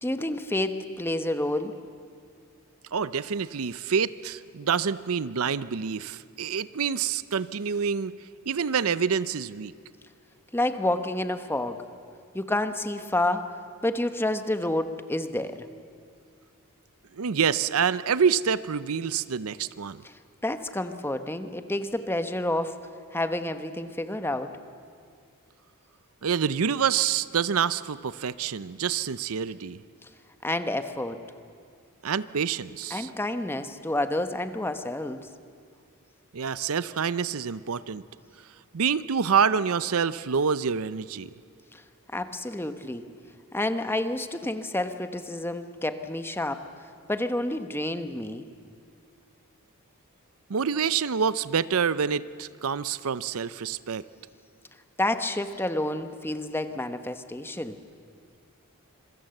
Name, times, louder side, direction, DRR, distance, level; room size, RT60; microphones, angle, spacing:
voice 1, 0.0-1.7 10.5-11.8 12.3-13.5 13.8-15.7 20.0-20.1 20.4-22.8 23.1-24.6 30.4-31.2 32.9-35.3 41.7-41.8 42.1-43.1 43.5-46.6 47.1-48.4 55.0-57.7, left 1 dB, 10° left, 9 dB, 1.0 m, -29 dB
voice 2, 2.9-8.1 8.5-9.7 17.2-20.0 26.2-29.8 32.0-33.1 36.3-38.0 38.7-41.3 50.5-54.0, right 6 dB, 70° right, 16 dB, 0.6 m, -27 dB
26.5 x 23.0 x 7.8 m, 2.3 s
head